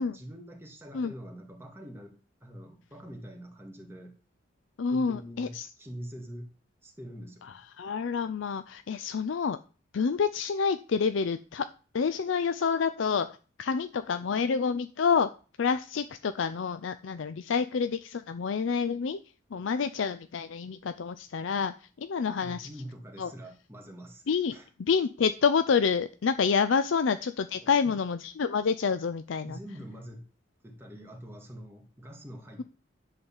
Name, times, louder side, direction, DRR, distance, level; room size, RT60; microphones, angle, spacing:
voice 1, 0.0-2.1 2.4-4.2 4.9-6.5 6.8-7.6 22.4-24.2 24.5-24.7 27.6-28.0 29.4-30.2 30.6-32.6, equal, 10° right, 1 dB, 1.8 m, -44 dB
voice 2, 4.8-5.7 7.8-9.6 9.9-11.7 11.9-15.3 15.6-19.2 19.5-22.7 23.2-23.3 24.3-29.6, left 5 dB, 75° left, 11 dB, 0.4 m, -28 dB
11.0 x 4.0 x 7.1 m, 0.37 s
head